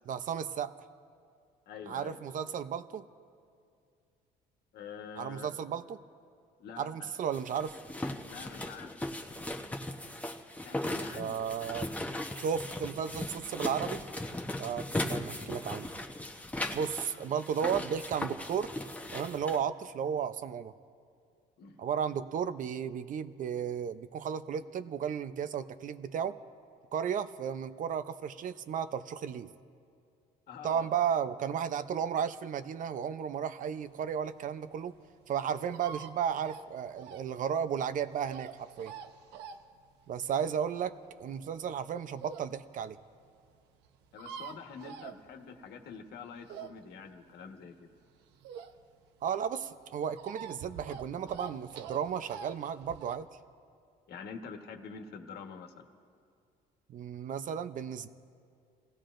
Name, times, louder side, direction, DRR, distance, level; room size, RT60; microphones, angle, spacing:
voice 1, 0.1-0.8 1.9-3.0 5.2-6.0 6.8-7.8 11.1-11.9 12.4-14.0 14.6-15.9 16.7-18.7 19.1-20.7 21.8-26.4 26.9-29.5 30.6-34.9 35.3-38.9 40.1-43.0 49.2-53.3 56.9-58.1, right 8 dB, 50° right, 11 dB, 0.7 m, -34 dB
voice 2, 1.7-2.2 4.7-5.5 6.6-6.8 8.3-9.1 10.6-11.4 17.1-17.2 21.6-21.8 30.5-30.9 44.1-47.9 54.1-55.9, left 6 dB, 70° left, 5 dB, 1.4 m, -46 dB
sound 1, 7.3-19.6, left 1 dB, 10° left, 1.0 m, -38 dB
sound 2, 33.9-42.5 43.0-43.1 43.3-43.4 43.6-43.7 43.8-45.7 46.1-49.1 49.4-53.2, right 7 dB, 90° right, 0.9 m, -46 dB
29.0 x 16.5 x 2.6 m, 2.4 s
cardioid pair, 110°, 17 cm